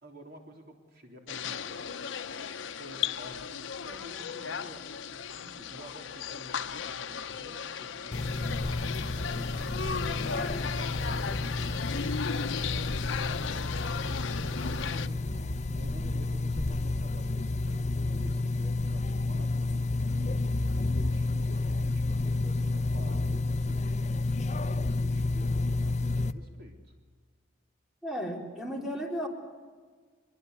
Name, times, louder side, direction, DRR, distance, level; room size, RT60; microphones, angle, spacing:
voice 1, 0.0-26.9, equal, 55° right, 2 dB, 3.7 m, -51 dB
sound 1, 1.3-15.1, left 6 dB, 80° left, 0.8 m, -36 dB
sound 2, 8.1-26.3, left 2 dB, 40° left, 0.8 m, -30 dB
voice 2, 28.0-29.3, equal, ahead, 0 dB, 3.8 m, -34 dB
24.5 x 23.0 x 8.2 m, 1.5 s
head